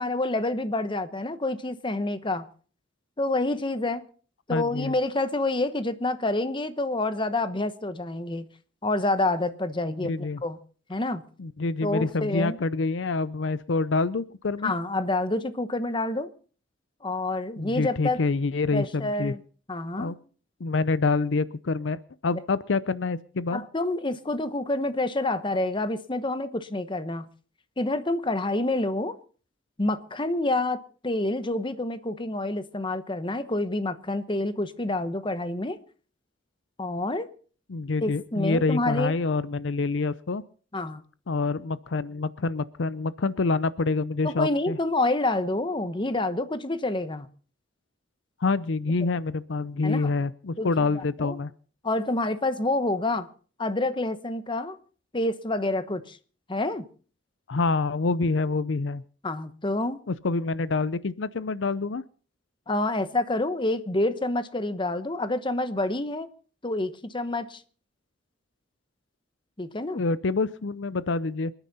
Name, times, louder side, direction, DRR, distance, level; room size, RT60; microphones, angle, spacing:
voice 1, 0.0-2.5 3.2-4.1 4.5-8.5 8.8-10.6 10.9-11.2 11.8-12.6 14.6-16.3 17.0-18.2 18.7-19.4 19.7-20.1 23.5-27.3 27.8-29.2 29.8-35.8 36.8-37.3 38.0-39.1 40.7-41.0 44.2-47.3 49.8-50.1 50.6-51.4 51.8-53.3 53.6-54.8 55.1-56.2 56.5-56.8 59.2-60.0 62.7-66.3 66.6-67.6 69.6-70.0, left 2 dB, 25° left, 1.0 m, -28 dB
voice 2, 4.5-4.9 10.0-10.4 11.4-14.7 17.6-19.3 20.0-20.2 20.6-23.6 37.7-40.4 41.3-44.8 48.4-51.5 57.5-59.0 60.1-62.0 69.9-71.5, left 3 dB, 75° left, 0.6 m, -27 dB
27.0 x 9.9 x 4.1 m
head